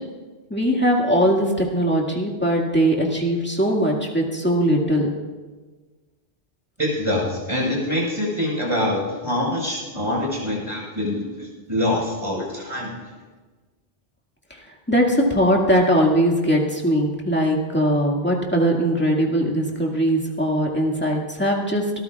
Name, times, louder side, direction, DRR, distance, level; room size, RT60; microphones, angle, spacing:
voice 1, 0.5-5.1 12.4-12.5 14.5-14.6 14.9-21.8, equal, 10° left, -1 dB, 2.0 m, -20 dB
voice 2, 6.8-13.1, left 1 dB, 30° right, -4 dB, 5.0 m, -25 dB
25.5 x 14.0 x 2.4 m, 1.3 s
omnidirectional pair, 1.0 m